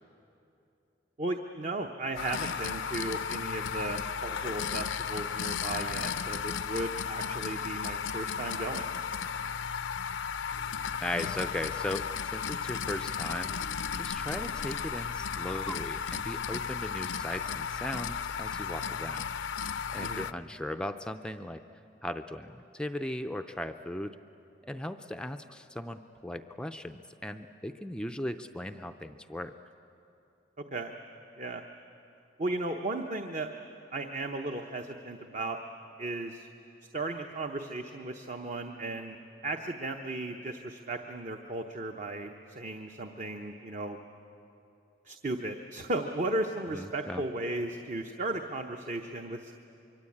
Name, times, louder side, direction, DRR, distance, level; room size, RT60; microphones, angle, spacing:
voice 1, 1.2-8.9 20.0-20.3 30.7-30.9 31.4-31.6 32.4-33.5 33.9-35.6 36.0-36.5 36.9-39.2 39.4-44.0 45.1-49.5, right 2 dB, 40° right, 5 dB, 0.9 m, -35 dB
sound 1, 2.2-20.3, left 7 dB, 75° left, 0.6 m, -34 dB
voice 2, 11.0-13.6 13.9-19.2 19.9-21.6 22.0-24.1 24.6-29.5 46.7-47.2, left 1 dB, 5° left, 7 dB, 0.5 m, -37 dB
24.0 x 24.0 x 8.7 m, 2.8 s
head